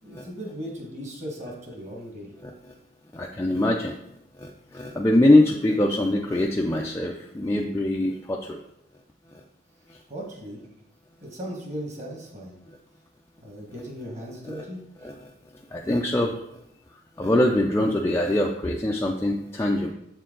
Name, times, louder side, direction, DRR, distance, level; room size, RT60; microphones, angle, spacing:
voice 1, 0.0-2.3 10.1-10.6 11.2-12.5 13.4-14.8, equal, 35° right, -1 dB, 1.5 m, -37 dB
voice 2, 2.4-2.7 3.1-4.0 4.4-8.6 9.9-10.0 12.7-12.8 14.4-14.6 15.0-15.3 15.7-16.4 17.2-19.9, left 1 dB, 15° left, 0 dB, 0.3 m, -23 dB
7.3 x 4.6 x 3.7 m, 0.81 s
head